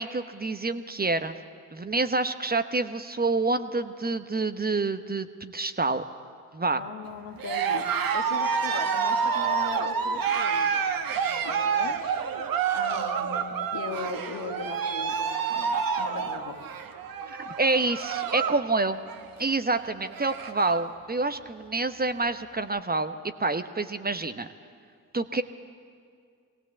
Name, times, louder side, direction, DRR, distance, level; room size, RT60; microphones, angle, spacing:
voice 1, 0.0-1.4 1.7-6.0 6.5-6.8 17.3-19.0 19.4-23.1 23.4-24.5 25.1-25.4, right 3 dB, 20° right, 10 dB, 0.9 m, -27 dB
voice 2, 6.8-10.8 11.2-12.2 12.7-16.6, left 6 dB, 65° left, 5 dB, 1.5 m, -39 dB
Cheering, 7.4-18.6 18.9-19.4 19.8-19.9 20.1-20.9, right 6 dB, 55° right, 1.2 m, -28 dB
21.5 x 17.5 x 7.3 m, 2.2 s
hypercardioid pair, 45°, 42 cm